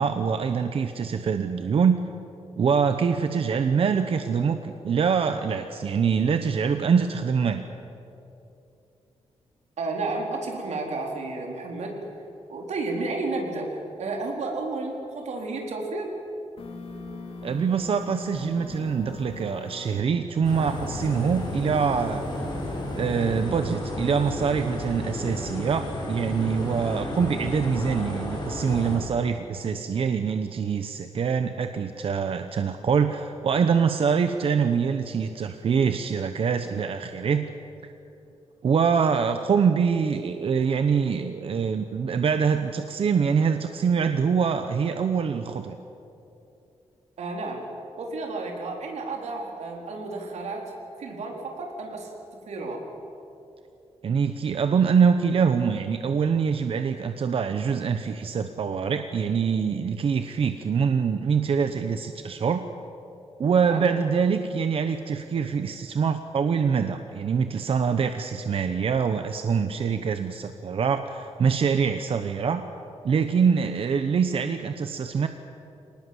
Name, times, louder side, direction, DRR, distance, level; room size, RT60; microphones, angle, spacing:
voice 1, 0.0-2.0 2.6-7.6 17.4-22.2 23.0-37.5 38.6-45.7 54.0-62.6 63.4-72.6 73.0-75.3, right 6 dB, 55° right, 8 dB, 1.0 m, -24 dB
voice 2, 9.8-12.0 12.5-16.1 47.2-47.6 48.0-50.6 51.0-52.1 52.5-52.8 63.6-63.8, right 3 dB, 85° right, 1 dB, 4.5 m, -32 dB
sound 1, 16.6-20.0 20.4-23.4, left 3 dB, 55° left, 3.1 m, -39 dB
sound 2, 20.4-29.0, left 1 dB, 40° left, 6.2 m, -33 dB
26.0 x 19.0 x 7.9 m, 2.8 s
wide cardioid pair, 150°, 11 cm